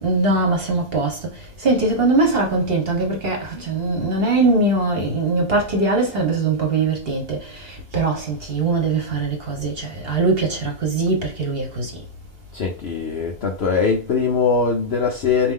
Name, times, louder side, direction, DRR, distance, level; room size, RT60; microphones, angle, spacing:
voice 1, 0.0-1.2 1.6-11.9, right 3 dB, 40° right, 1.1 m, -21 dB
voice 2, 12.5-15.5, left 5 dB, 60° left, 0.6 m, -21 dB
4.3 x 2.6 x 3.6 m
omnidirectional pair, 1.7 m